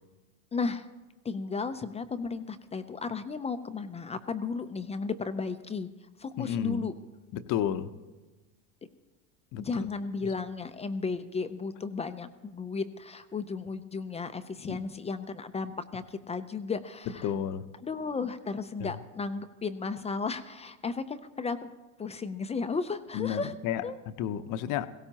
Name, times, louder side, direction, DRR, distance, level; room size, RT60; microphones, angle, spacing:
voice 1, 0.5-0.9 1.2-5.9 6.2-6.9 9.6-17.3 17.8-21.7 22.0-23.5 23.8-24.0, left 4 dB, 15° left, 0.5 m, -34 dB
voice 2, 6.4-6.8 7.3-7.9 9.5-9.7 14.7-14.8 17.2-17.7 18.8-18.9 23.1-23.8 24.2-24.9, left 9 dB, 50° left, 0.8 m, -31 dB
18.0 x 17.0 x 2.9 m
supercardioid pair, 105°, 41 cm